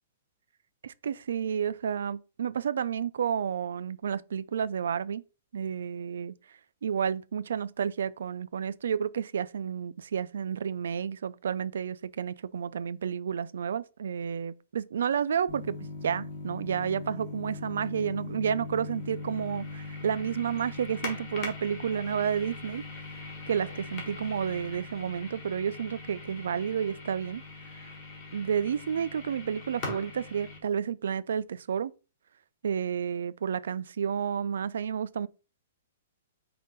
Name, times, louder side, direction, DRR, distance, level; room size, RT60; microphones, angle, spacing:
voice 1, 0.8-5.2 5.5-6.3 6.8-15.8 16.0-22.8 23.5-27.4 28.3-31.9 32.6-35.3, right 8 dB, 80° right, 0.3 m, -31 dB
sound 1, 15.5-30.6, left 3 dB, 30° left, 1.3 m, -41 dB
5.4 x 2.5 x 3.9 m
hypercardioid pair, 170°, 0 cm